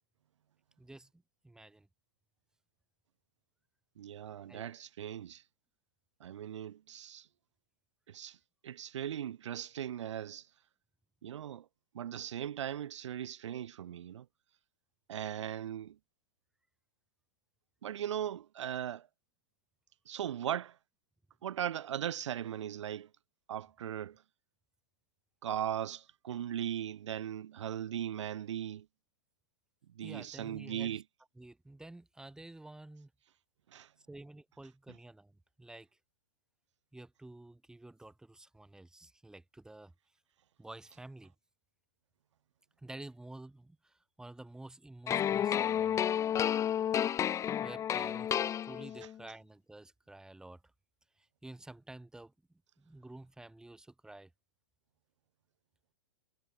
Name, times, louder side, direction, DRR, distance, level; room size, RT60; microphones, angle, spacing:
voice 1, 0.8-1.9 4.5-4.7 30.0-30.9 31.4-33.1 34.0-35.9 36.9-39.9 40.6-41.3 42.8-46.0 47.6-48.3 48.7-50.6 51.2-52.3 52.8-54.3, right 2 dB, 5° right, 7.6 m, -50 dB
voice 2, 4.0-5.4 6.2-7.3 8.1-8.4 8.6-10.4 11.2-11.7 11.9-14.3 15.1-16.0 17.8-19.1 20.1-20.8 21.4-23.1 23.5-24.2 25.4-28.9 30.0-31.0 33.7-33.9, right 10 dB, 70° right, 5.4 m, -38 dB
sound 1, 45.1-49.2, left 9 dB, 20° left, 1.1 m, -31 dB
hypercardioid pair, 135°, 16 cm